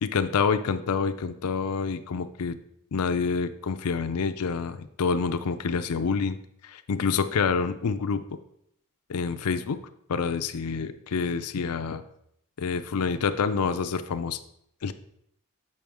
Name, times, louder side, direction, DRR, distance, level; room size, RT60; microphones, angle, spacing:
voice 1, 0.0-2.5 2.9-6.4 6.6-8.2 9.1-9.8 10.1-12.0 12.6-14.4 14.8-14.9, left 5 dB, 80° left, 9 dB, 0.5 m, -27 dB
7.5 x 5.5 x 3.5 m, 0.74 s
head